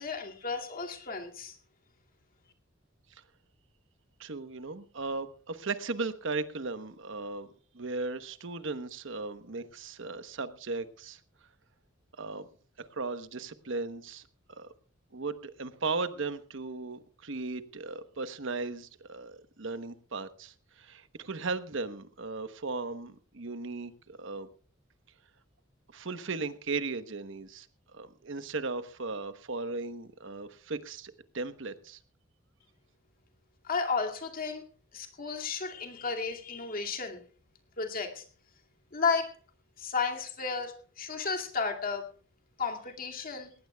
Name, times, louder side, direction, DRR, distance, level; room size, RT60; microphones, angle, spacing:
voice 1, 0.0-1.6 33.6-34.6 34.9-37.2 37.8-38.2 38.9-39.3 39.8-42.1 42.6-43.5, left 5 dB, 45° left, 3 dB, 2.4 m, -33 dB
voice 2, 4.2-7.5 7.7-11.2 12.2-12.5 12.8-14.7 15.1-24.5 25.9-27.7 27.9-32.0, right 3 dB, 65° right, 11 dB, 1.0 m, -37 dB
19.5 x 18.0 x 2.3 m, 0.40 s
head